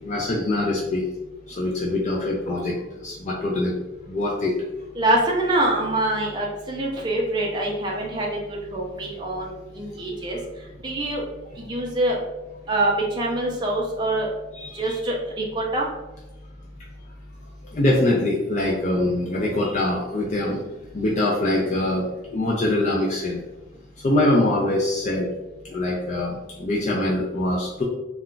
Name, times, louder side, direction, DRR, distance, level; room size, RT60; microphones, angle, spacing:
voice 1, 0.0-1.0 1.5-2.8 3.0-3.8 4.1-4.5 14.5-15.0 17.7-20.6 20.9-22.0 22.3-23.4 24.0-25.3 25.7-27.8, left 1 dB, 40° left, -3 dB, 0.4 m, -23 dB
voice 2, 5.0-10.4 10.8-11.2 11.7-12.2 12.7-14.3 14.7-15.9, right 1 dB, 25° right, -2 dB, 0.5 m, -25 dB
2.3 x 2.2 x 3.7 m, 1.0 s
head